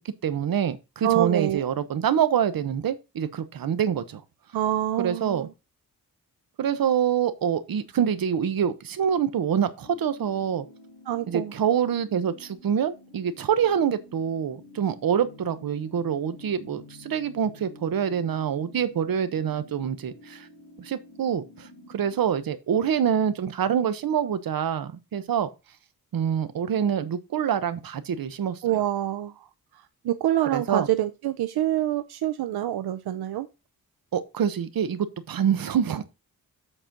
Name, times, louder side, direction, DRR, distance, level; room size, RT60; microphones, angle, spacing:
voice 1, 0.2-4.2 5.0-5.5 6.6-10.6 11.3-20.5 20.8-25.5 26.1-28.8 30.5-30.9 34.1-36.0, right 8 dB, 65° right, 1.1 m, -26 dB
voice 2, 1.0-1.6 4.5-5.5 11.1-11.5 28.6-29.5 30.0-33.5, right 13 dB, 90° right, 0.7 m, -26 dB
sound 1, 9.8-22.2, left 2 dB, 75° left, 2.9 m, -49 dB
7.9 x 4.3 x 5.9 m
wide cardioid pair, 115°, 37 cm